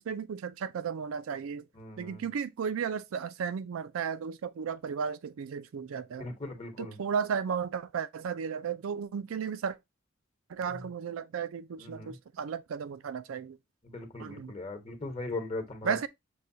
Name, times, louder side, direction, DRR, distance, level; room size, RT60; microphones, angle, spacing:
voice 1, 0.0-1.7 2.0-6.3 6.8-9.8 10.5-13.6 14.2-14.5 15.8-16.1, right 6 dB, 85° right, 0.4 m, -34 dB
voice 2, 1.7-2.3 6.2-7.0 10.7-10.8 11.8-12.2 13.8-16.1, left 2 dB, 30° left, 1.0 m, -39 dB
6.3 x 2.2 x 2.7 m
head